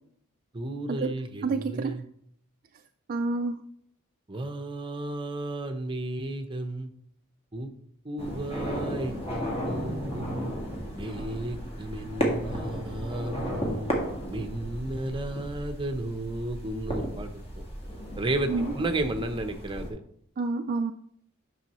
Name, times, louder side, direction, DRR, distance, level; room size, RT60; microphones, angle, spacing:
voice 1, 0.5-2.0 4.3-6.9 7.5-7.7 8.0-10.5 10.9-13.9 14.3-17.4 18.2-20.0, right 2 dB, 20° right, 6 dB, 0.7 m, -33 dB
voice 2, 1.4-2.0 3.1-3.6 18.5-18.7 20.4-20.9, right 3 dB, 40° right, 6 dB, 0.3 m, -28 dB
sound 1, 8.2-19.9, equal, 30° left, 1.7 m, -34 dB
10.0 x 6.2 x 3.0 m, 0.68 s
head